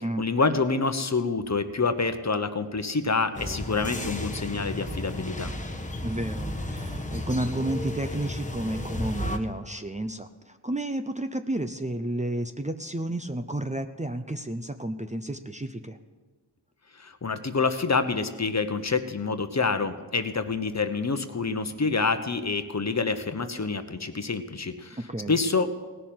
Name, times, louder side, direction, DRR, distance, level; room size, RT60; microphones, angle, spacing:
voice 1, 0.2-5.5 17.0-25.0 25.3-25.7, left 4 dB, 35° left, 9 dB, 1.1 m, -27 dB
sound 1, 3.3-9.4, left 1 dB, 15° left, 1.3 m, -33 dB
voice 2, 6.0-16.0 25.0-25.3, right 1 dB, 15° right, 8 dB, 0.7 m, -31 dB
17.5 x 6.7 x 7.6 m, 1.4 s
cardioid pair, 55°, 44 cm